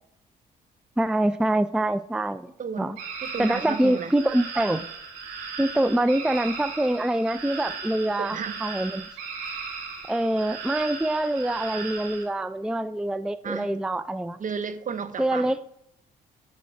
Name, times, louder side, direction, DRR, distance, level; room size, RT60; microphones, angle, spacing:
voice 1, 1.0-2.5 2.8-3.0 3.4-4.9 5.6-9.1 10.1-14.4 15.2-15.6, right 1 dB, 5° right, 0.3 m, -25 dB
voice 2, 2.6-4.1 8.2-8.6 13.4-13.8 14.4-15.5, right 6 dB, 45° right, 0.9 m, -33 dB
sound 1, 3.0-12.2, right 5 dB, 90° right, 1.4 m, -37 dB
10.5 x 4.1 x 4.8 m
supercardioid pair, 55°, 18 cm